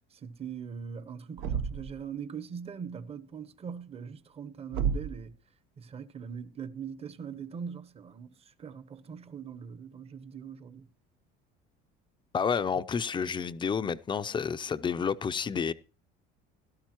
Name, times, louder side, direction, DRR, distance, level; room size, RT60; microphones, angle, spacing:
voice 1, 0.1-5.3 5.8-10.9, right 7 dB, 30° right, 0.9 m, -41 dB
Thump thud, 1.4-2.0 4.7-5.3, right 7 dB, 80° right, 1.1 m, -31 dB
voice 2, 12.3-15.7, left 6 dB, 25° left, 0.6 m, -30 dB
17.5 x 12.5 x 3.0 m
cardioid pair, 125°, 20 cm